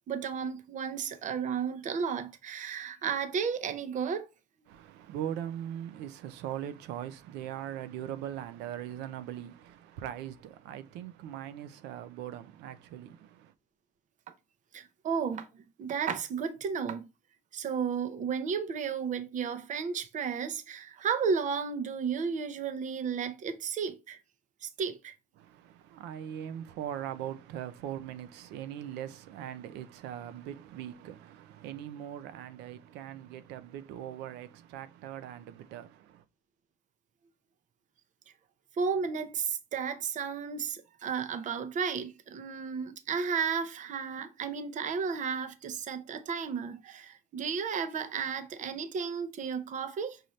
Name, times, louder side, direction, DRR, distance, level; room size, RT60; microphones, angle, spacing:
voice 1, 0.1-4.3 14.7-17.0 17.5-24.2 24.6-25.1 38.8-50.2, right 6 dB, 45° right, 0.7 m, -33 dB
voice 2, 4.7-13.5 25.4-36.2, right 10 dB, 90° right, 0.6 m, -40 dB
5.6 x 2.7 x 3.1 m
cardioid pair, 110°, 17 cm